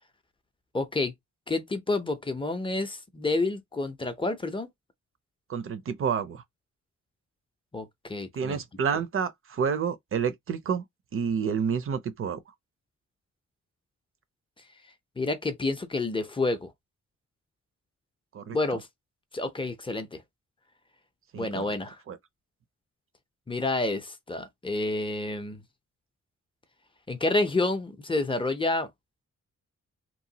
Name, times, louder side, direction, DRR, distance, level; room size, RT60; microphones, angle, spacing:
voice 1, 0.7-1.1 1.5-4.7 7.7-8.6 15.2-16.7 18.5-18.9 19.3-20.2 21.3-22.0 23.5-25.6 27.1-28.9, left 2 dB, 15° left, 0.5 m, -29 dB
voice 2, 5.5-6.4 8.3-10.8 11.1-12.4 18.3-18.6 21.3-21.7 22.1-22.2, right 6 dB, 45° right, 0.6 m, -29 dB
3.0 x 2.2 x 2.7 m
wide cardioid pair, 130°, 30 cm